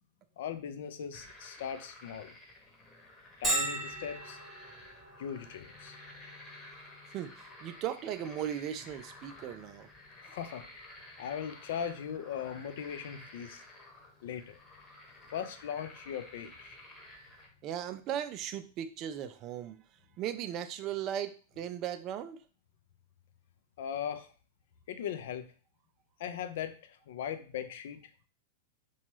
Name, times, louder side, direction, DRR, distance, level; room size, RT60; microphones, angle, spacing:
voice 1, 0.4-2.3 3.4-4.4 5.2-5.9 10.2-10.6 11.2-13.6 14.2-14.6 15.3-16.8 23.8-24.3 24.9-25.5 26.2-28.0, left 8 dB, 65° left, 9 dB, 0.4 m, -39 dB
sound 1, 1.1-17.5, left 1 dB, 15° left, 0.9 m, -52 dB
Bell, 3.4-18.9, right 1 dB, 20° right, 0.9 m, -43 dB
voice 2, 7.1-9.9 17.6-19.8 20.2-22.4, right 10 dB, 40° right, 10 dB, 0.3 m, -37 dB
2.9 x 2.3 x 3.0 m, 0.38 s
hypercardioid pair, 105°, 0 cm